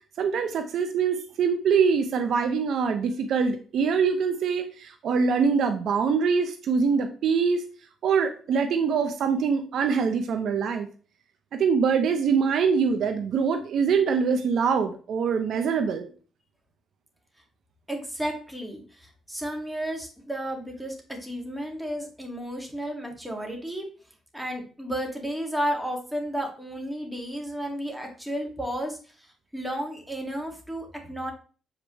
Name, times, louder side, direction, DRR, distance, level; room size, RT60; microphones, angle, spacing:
voice 1, 0.2-7.6 8.0-10.9 11.6-16.1, right 6 dB, 70° right, 8 dB, 0.8 m, -24 dB
voice 2, 17.9-23.8 24.3-31.3, equal, 5° right, 1 dB, 2.1 m, -33 dB
7.3 x 5.1 x 3.1 m, 0.38 s
cardioid pair, 90°, 0 cm